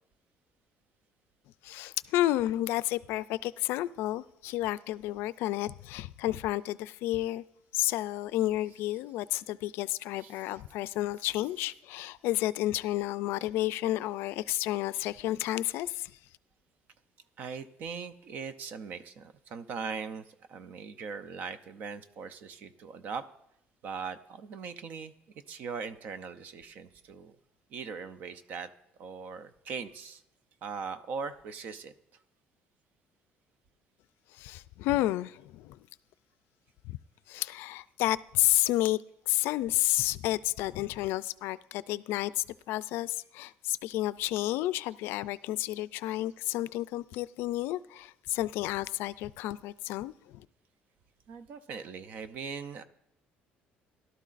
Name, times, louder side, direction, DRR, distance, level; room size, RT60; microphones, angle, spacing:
voice 1, 1.6-7.4 7.7-16.1 34.3-35.8 36.8-37.0 37.3-39.0 39.3-50.5, left 15 dB, 75° left, 0.3 m, -31 dB
voice 2, 8.7-9.0 10.2-10.6 11.2-11.6 17.4-23.2 23.8-25.1 25.5-27.4 27.7-28.7 29.0-30.2 30.6-31.9 51.3-52.8, right 5 dB, 50° right, 0.6 m, -40 dB
17.0 x 12.0 x 2.5 m
cardioid pair, 160°, 4 cm